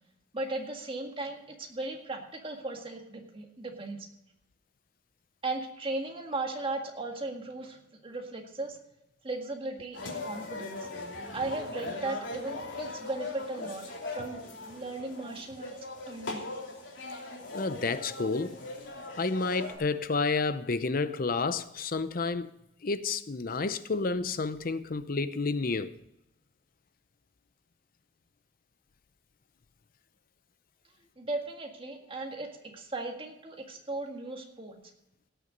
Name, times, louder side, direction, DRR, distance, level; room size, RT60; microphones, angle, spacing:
voice 1, 0.3-4.1 5.4-8.8 9.2-10.8 11.3-13.8 14.1-15.7 16.0-16.4 31.2-34.8, right 2 dB, 30° right, 1.9 m, -37 dB
sound 1, 9.9-19.8, left 2 dB, 80° left, 2.9 m, -40 dB
voice 2, 17.5-18.6 19.2-22.5 22.8-25.9, left 4 dB, 50° left, 0.6 m, -30 dB
17.5 x 7.0 x 5.2 m
head